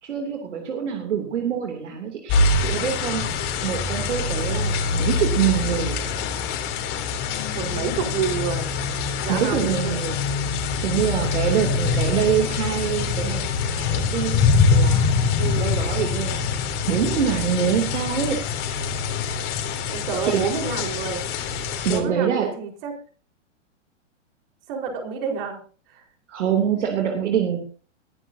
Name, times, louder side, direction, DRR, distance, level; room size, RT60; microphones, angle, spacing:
voice 1, 0.0-6.0 9.3-10.2 10.8-16.4 16.8-18.8 20.2-20.4 21.8-22.5 26.3-27.6, right 8 dB, 75° right, 3 dB, 3.0 m, -25 dB
sound 1, 2.3-22.0, left 4 dB, 35° left, 3.5 m, -24 dB
voice 2, 7.5-8.7 9.2-10.0 15.4-15.7 19.9-21.2 21.8-22.9 24.7-25.6 25.9-26.0, right 6 dB, 50° right, 2 dB, 4.6 m, -29 dB
20.5 x 11.0 x 2.8 m, 0.38 s
hypercardioid pair, 130°, 36 cm